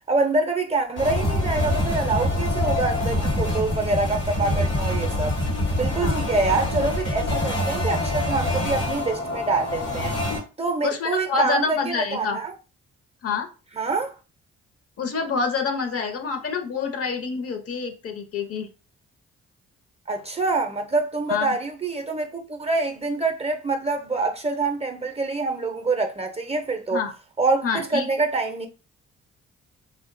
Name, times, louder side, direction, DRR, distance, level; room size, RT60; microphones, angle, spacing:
voice 1, 0.1-5.4 5.8-10.2 10.6-12.5 13.7-14.1 20.1-27.0 27.4-28.7, right 3 dB, 20° right, 0.5 m, -25 dB
sound 1, 1.0-10.4, left 1 dB, 90° left, 1.0 m, -25 dB
voice 2, 10.8-12.4 13.2-13.5 15.0-18.7 21.3-21.6 26.9-27.1 27.6-28.1, left 5 dB, 50° left, 0.6 m, -27 dB
2.5 x 2.1 x 2.5 m
supercardioid pair, 50°, 29 cm